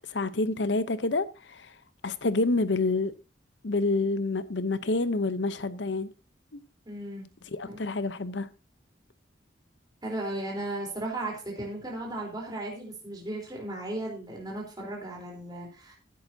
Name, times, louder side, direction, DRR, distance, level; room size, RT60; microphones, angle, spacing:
voice 1, 0.1-1.7 2.0-3.1 3.6-6.1 6.5-6.6 7.5-8.5, left 3 dB, 90° left, 0.8 m, -28 dB
voice 2, 6.9-7.2 7.6-7.8 10.0-15.9, right 1 dB, 25° right, 3.8 m, -36 dB
15.0 x 10.5 x 2.8 m
head